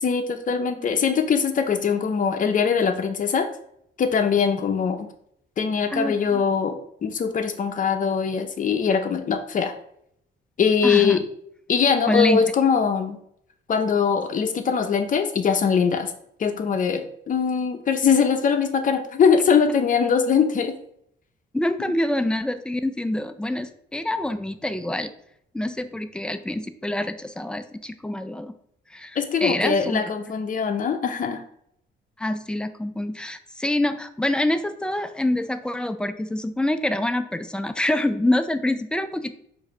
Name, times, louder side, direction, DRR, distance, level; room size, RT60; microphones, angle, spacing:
voice 1, 0.0-3.5 4.0-5.1 5.6-9.7 10.6-11.3 11.7-13.2 13.7-16.1 16.4-20.7 29.2-31.4, left 6 dB, 40° left, 6 dB, 0.7 m, -22 dB
voice 2, 5.9-6.4 10.8-11.3 12.1-12.4 21.5-25.1 25.5-28.5 28.9-30.0 32.2-39.3, left 1 dB, 5° left, 9 dB, 0.3 m, -26 dB
4.7 x 2.7 x 4.2 m, 0.71 s
cardioid pair, 90°, 20 cm